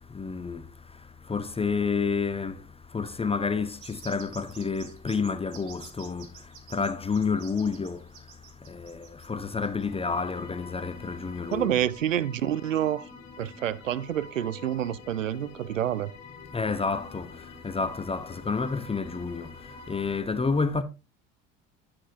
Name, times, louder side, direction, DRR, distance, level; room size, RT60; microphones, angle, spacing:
voice 1, 0.1-0.6 1.3-2.6 2.9-6.3 6.7-8.1 8.7-11.8 16.5-19.5 19.9-20.8, left 4 dB, 15° left, 0.8 m, -29 dB
sound 1, 3.8-9.8, right 7 dB, 50° right, 2.1 m, -49 dB
sound 2, 9.8-20.2, left 3 dB, 65° left, 2.7 m, -47 dB
voice 2, 11.5-13.1 13.4-16.1, right 11 dB, 90° right, 0.5 m, -28 dB
9.7 x 8.6 x 2.7 m
figure-of-eight pair, 60°, 37 cm